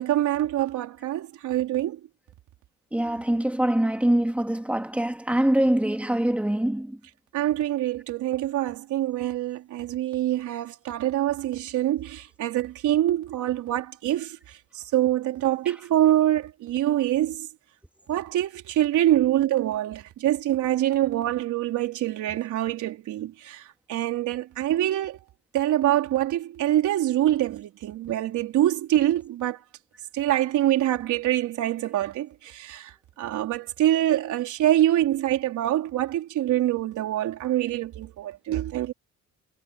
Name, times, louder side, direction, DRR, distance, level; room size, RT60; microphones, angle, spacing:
voice 1, 0.0-2.0 7.3-14.4 14.7-17.5 18.1-23.6 23.9-25.2 25.5-29.6 30.1-38.9, right 13 dB, 80° right, 4.1 m, -25 dB
voice 2, 2.9-7.0, right 1 dB, 5° right, 2.4 m, -24 dB
cardioid pair, 165°, 30 cm